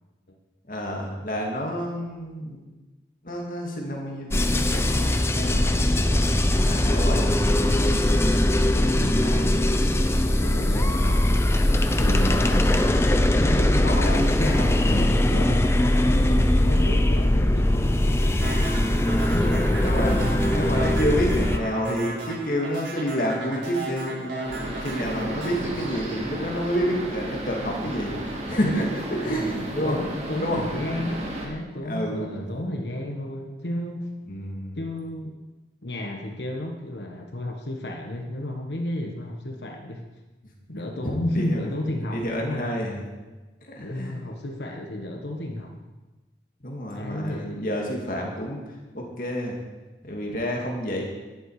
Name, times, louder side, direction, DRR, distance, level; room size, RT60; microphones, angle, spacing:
voice 1, 0.7-2.6 3.2-5.2 6.6-7.4 8.1-8.5 14.0-14.3 19.8-28.1 28.5-30.1 30.4-30.7 31.8-32.4 34.3-34.8 41.0-41.7 42.1-43.0 43.7-44.2 46.6-49.6 50.0-51.0, equal, 50° left, -1 dB, 2.4 m, -29 dB
sound 1, 4.3-21.6, left 1 dB, 15° left, 0.6 m, -21 dB
voice 2, 5.0-6.4 8.3-11.2 12.0-12.7 13.4-18.7 19.1-20.5 29.2-34.1 34.7-35.4 35.8-40.0 40.7-42.7 43.8-45.7 46.9-47.8, left 1 dB, 80° left, 2 dB, 1.4 m, -33 dB
sound 2, 18.4-26.8, right 3 dB, 85° right, 4.7 m, -36 dB
sound 3, 24.5-31.5, right 1 dB, 35° right, 2.3 m, -34 dB
13.5 x 11.0 x 5.0 m, 1.2 s
head